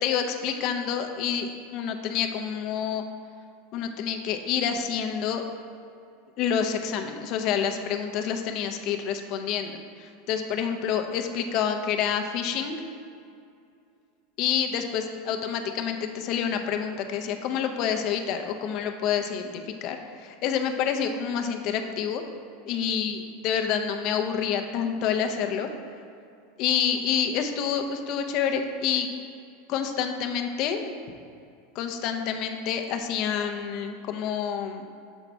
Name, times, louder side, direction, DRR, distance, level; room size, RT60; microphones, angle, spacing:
voice 1, 0.0-3.0 3.7-5.4 6.4-12.8 14.4-22.2 22.7-25.7 26.6-29.1 29.7-31.0 31.7-34.8, left 8 dB, 55° left, 5 dB, 0.6 m, -28 dB
7.1 x 4.0 x 4.6 m, 2.5 s
hypercardioid pair, 100°, 0 cm